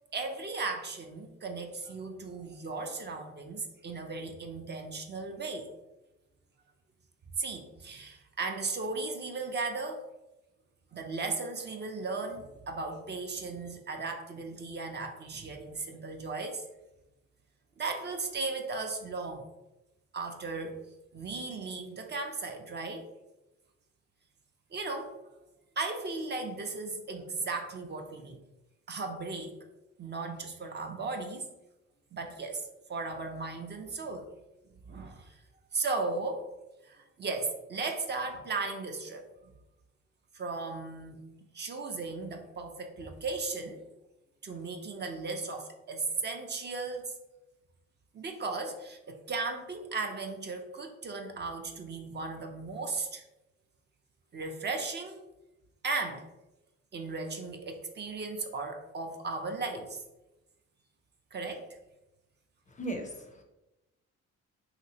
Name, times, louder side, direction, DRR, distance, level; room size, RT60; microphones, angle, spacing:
voice 1, 0.1-5.7 7.4-10.0 10.9-16.6 17.8-19.4 20.1-20.8 21.1-23.1 24.7-25.1 25.8-28.4 28.9-29.6 30.0-31.5 32.1-34.3 34.9-35.4 35.7-36.5 36.8-39.5 40.3-41.3 41.5-43.8 44.4-47.1 48.1-53.2 54.3-55.2 55.8-56.2 56.9-60.0 61.3-61.6, right 3 dB, 35° right, 3 dB, 0.5 m, -36 dB
voice 2, 62.7-63.4, right 2 dB, 25° left, 3 dB, 0.4 m, -37 dB
3.3 x 2.8 x 2.8 m, 0.98 s
cardioid pair, 90°, 30 cm